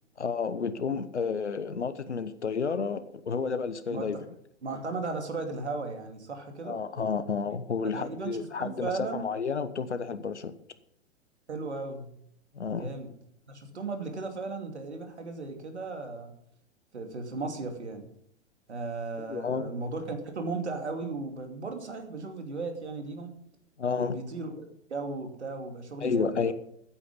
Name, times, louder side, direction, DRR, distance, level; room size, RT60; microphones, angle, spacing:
voice 1, 0.2-4.2 6.6-10.5 12.5-12.9 19.3-19.7 23.8-24.2 26.0-26.5, left 5 dB, 80° left, 12 dB, 1.1 m, -31 dB
voice 2, 4.6-6.8 7.9-8.3 8.6-9.3 11.5-12.1 12.7-13.1 13.5-16.3 16.9-18.0 18.7-23.4 23.9-26.5, right 3 dB, 75° right, 4 dB, 2.7 m, -36 dB
15.0 x 8.6 x 5.4 m, 0.71 s
figure-of-eight pair, 105°, 34 cm